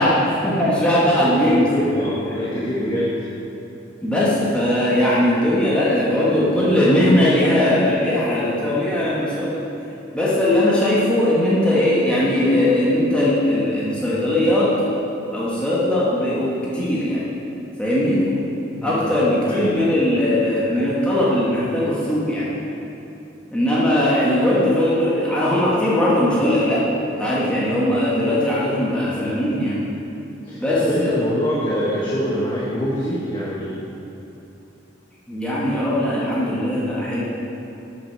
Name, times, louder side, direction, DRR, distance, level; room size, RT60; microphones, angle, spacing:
voice 1, 0.0-1.7 2.5-2.9 4.0-9.6 10.1-14.7 15.3-17.2 17.8-18.2 18.8-22.5 23.5-26.9 27.2-29.8 30.5-31.2 35.3-37.3, left 1 dB, 5° left, -8 dB, 1.3 m, -19 dB
voice 2, 1.7-3.2 18.8-19.1 19.4-19.8 30.4-33.8, equal, 25° left, -7 dB, 1.1 m, -25 dB
8.6 x 6.0 x 5.7 m, 2.8 s
head